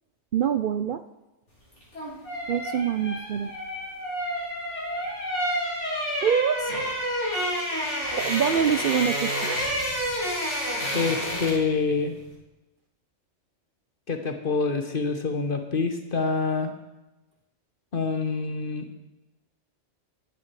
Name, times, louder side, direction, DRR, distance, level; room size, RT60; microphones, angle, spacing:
voice 1, 0.3-1.0 2.5-3.5 6.2-6.7 8.2-9.5, right 8 dB, 60° right, 10 dB, 0.6 m, -25 dB
sound 1, 1.7-11.7 12.0-12.2, equal, 70° left, 4.5 m, -29 dB
voice 2, 10.9-12.2 14.1-16.7 17.9-19.0, left 4 dB, 45° left, 6 dB, 1.4 m, -26 dB
14.0 x 11.0 x 4.8 m, 1.0 s
omnidirectional pair, 1.2 m